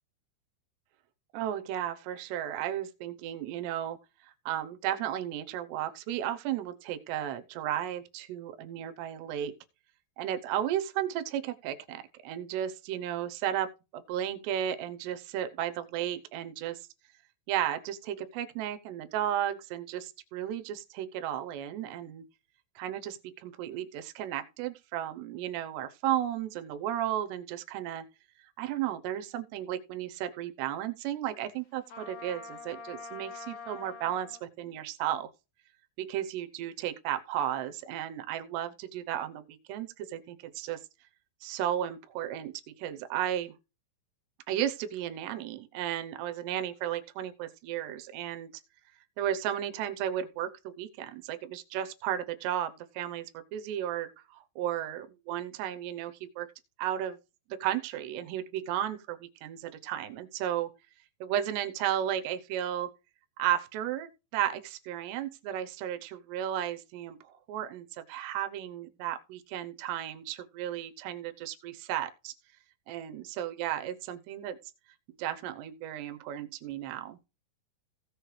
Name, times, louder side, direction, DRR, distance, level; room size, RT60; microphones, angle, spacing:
voice 1, 1.3-4.0 4.5-9.5 10.2-16.9 17.5-22.3 22.8-28.1 28.6-35.3 36.0-40.8 41.4-43.6 44.5-48.5 49.2-56.5 56.8-57.2 57.5-60.7 61.2-62.9 63.4-72.3 72.9-74.6 75.2-77.2, right 11 dB, 75° right, 2.7 m, -34 dB
Trumpet, 31.9-34.4, left 4 dB, 55° left, 2.5 m, -44 dB
16.5 x 6.4 x 3.2 m
omnidirectional pair, 5.6 m